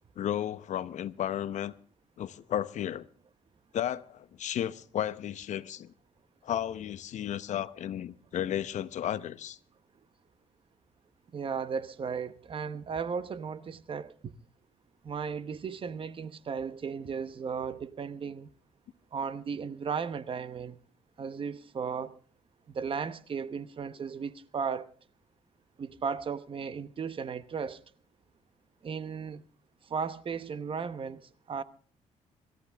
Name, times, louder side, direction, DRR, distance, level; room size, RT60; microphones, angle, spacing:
voice 1, 0.2-1.7 2.2-3.1 3.7-5.9 6.4-9.6, left 11 dB, 70° left, 0.9 m, -33 dB
voice 2, 11.3-14.3 15.0-18.5 19.1-20.8 21.2-22.2 22.7-24.9 25.8-27.8 28.8-29.4 29.9-31.6, right 6 dB, 45° right, 1.0 m, -35 dB
25.5 x 13.5 x 3.5 m
cardioid pair, 115°, 13 cm